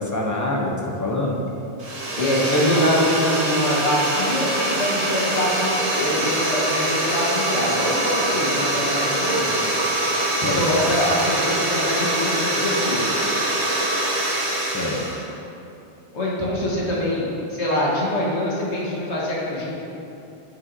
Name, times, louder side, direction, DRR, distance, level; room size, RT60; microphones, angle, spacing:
voice 1, 0.0-1.4 10.4-10.7 14.6-15.0, left 2 dB, 25° left, -2 dB, 0.4 m, -25 dB
sound 1, 1.8-15.2, right 1 dB, 75° right, 1.3 m, -24 dB
voice 2, 2.2-9.5 10.4-13.0 16.1-17.2 17.5-19.7, left 1 dB, 75° left, -5 dB, 1.6 m, -24 dB
7.6 x 6.1 x 2.7 m, 2.8 s
omnidirectional pair, 1.2 m